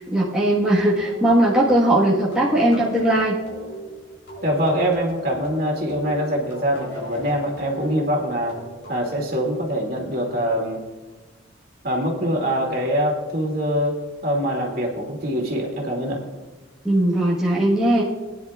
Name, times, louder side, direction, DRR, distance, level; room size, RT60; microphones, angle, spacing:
voice 1, 0.0-3.4 16.8-18.0, right 1 dB, 5° right, -7 dB, 1.3 m, -19 dB
sound 1, 0.8-10.0, equal, 70° left, 4.0 m, -38 dB
voice 2, 4.4-8.5 8.9-10.8 11.8-14.0 14.2-16.2, equal, 50° right, 0 dB, 2.3 m, -24 dB
20.0 x 10.0 x 2.4 m, 1.2 s
head